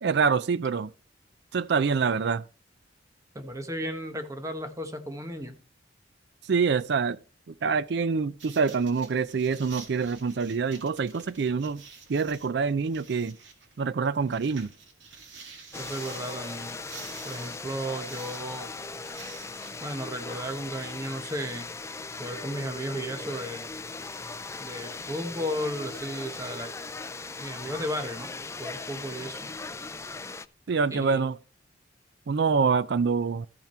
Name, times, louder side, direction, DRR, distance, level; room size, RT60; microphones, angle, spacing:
voice 1, 0.0-0.9 1.5-2.4 6.5-7.2 7.6-11.8 12.1-13.4 13.8-14.7 30.7-31.4 32.3-33.5, right 5 dB, 65° right, 0.4 m, -25 dB
voice 2, 3.3-5.6 15.7-16.8 17.2-18.7 19.8-21.7 22.2-23.7 24.6-26.7 27.4-28.3 28.6-29.5 30.9-31.2, equal, 15° right, 1.2 m, -34 dB
sound 1, 8.4-19.7, right 5 dB, 80° right, 2.2 m, -49 dB
sound 2, 15.7-30.5, left 3 dB, 15° left, 0.4 m, -39 dB
13.5 x 5.9 x 4.4 m
head